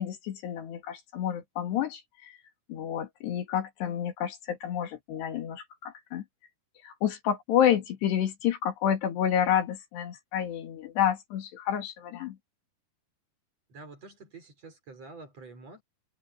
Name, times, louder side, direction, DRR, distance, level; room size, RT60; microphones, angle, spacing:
voice 1, 0.0-2.3 2.7-6.2 6.8-12.4, left 10 dB, 80° left, 4.5 m, -29 dB
voice 2, 13.7-15.8, right 3 dB, 40° right, 6.0 m, -47 dB
omnidirectional pair, 4.9 m